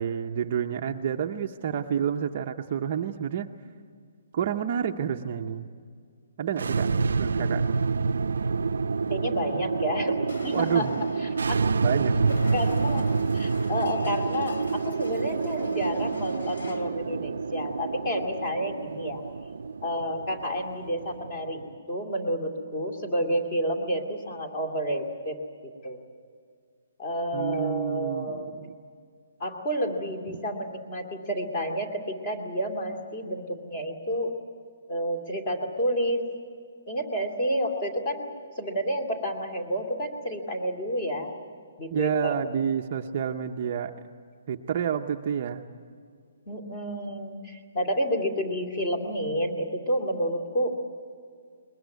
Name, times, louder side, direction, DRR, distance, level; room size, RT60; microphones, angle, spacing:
voice 1, 0.0-3.5 4.3-5.7 6.4-6.9 7.2-7.7 10.5-10.9 11.8-12.4 27.3-28.7 41.9-43.9 44.5-45.6, right 8 dB, 30° right, 4 dB, 0.7 m, -29 dB
sound 1, 6.5-21.7, right 4 dB, 80° right, 0.6 m, -28 dB
voice 2, 9.1-11.6 12.5-13.1 13.3-19.2 19.8-25.4 25.8-26.0 27.0-28.7 29.4-34.3 34.9-36.3 36.9-38.3 38.6-41.3 41.8-42.4 46.5-50.8, equal, 25° left, 3 dB, 2.3 m, -30 dB
Explosion, 10.3-16.9, left 2 dB, 70° left, 2.9 m, -45 dB
21.5 x 21.0 x 9.4 m, 2.2 s
hypercardioid pair, 175°, 0 cm